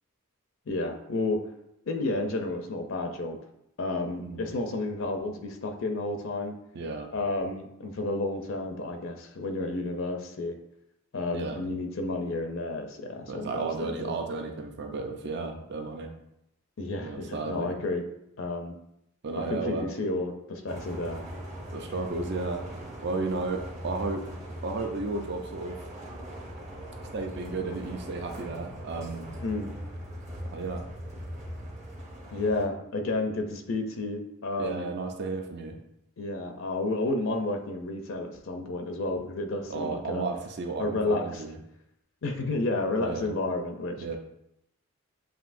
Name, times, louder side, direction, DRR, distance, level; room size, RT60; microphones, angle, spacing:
voice 1, 0.7-1.4 1.9-3.4 3.8-6.5 7.1-10.6 11.1-14.3 16.8-18.0 18.4-18.8 19.4-21.2 29.4-29.7 32.3-34.8 36.2-40.2 40.8-41.4 42.2-44.0, left 2 dB, 60° left, 4 dB, 0.5 m, -31 dB
voice 2, 6.7-7.1 11.3-11.6 13.3-16.1 17.0-17.7 19.2-19.9 21.7-24.3 24.6-25.8 27.1-29.3 30.5-30.8 34.6-35.8 39.7-41.6 43.0-43.3 44.0-44.2, right 3 dB, 50° right, 4 dB, 0.5 m, -33 dB
sound 1, 20.7-32.6, equal, 30° right, 0.9 m, -40 dB
7.4 x 2.7 x 2.5 m, 0.81 s
head